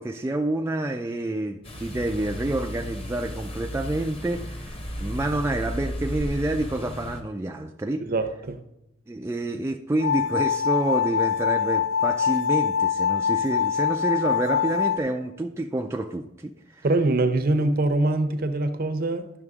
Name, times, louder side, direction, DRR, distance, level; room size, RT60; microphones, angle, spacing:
voice 1, 0.0-8.1 9.1-16.9, right 1 dB, 15° right, 0.3 m, -28 dB
sound 1, 1.6-7.2, equal, 30° left, 1.0 m, -34 dB
voice 2, 8.0-8.6 16.8-19.3, right 2 dB, 45° right, 0.6 m, -23 dB
sound 2, 10.0-15.0, left 7 dB, 75° left, 0.4 m, -24 dB
11.0 x 5.9 x 3.6 m
head